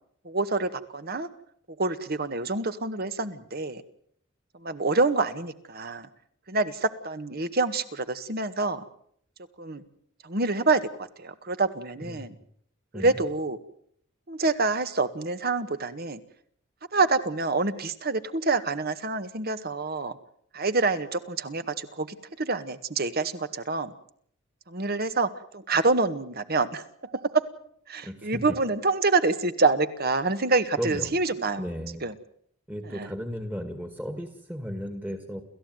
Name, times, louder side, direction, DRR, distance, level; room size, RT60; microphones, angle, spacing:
voice 1, 0.2-1.3 1.8-3.8 4.5-6.1 6.5-8.8 9.6-9.8 10.2-12.3 12.9-13.6 14.3-16.2 16.9-20.2 20.5-23.9 24.7-27.4 27.9-31.6 32.0-32.1 32.8-33.1, right 3 dB, 50° right, 11 dB, 1.7 m, -27 dB
voice 2, 28.0-28.4 30.8-31.2 31.6-32.0 32.7-35.4, equal, 10° right, 7 dB, 1.9 m, -35 dB
29.5 x 15.0 x 9.3 m, 0.67 s
head